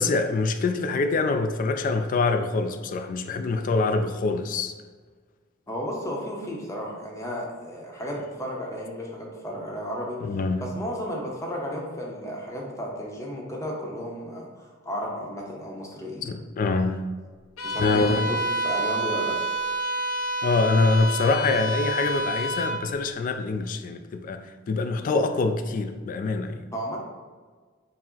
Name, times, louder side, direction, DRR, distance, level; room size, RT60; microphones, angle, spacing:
voice 1, 0.0-4.7 10.2-10.6 16.3-17.0 17.8-18.3 20.4-26.6, left 3 dB, 40° left, 8 dB, 0.3 m, -25 dB
voice 2, 5.7-10.2 10.6-16.3 17.6-19.3 26.7-27.0, equal, 15° left, -2 dB, 0.7 m, -33 dB
Bowed string instrument, 17.6-22.9, right 1 dB, 90° left, 0.5 m, -28 dB
4.7 x 2.0 x 3.8 m, 1.5 s
head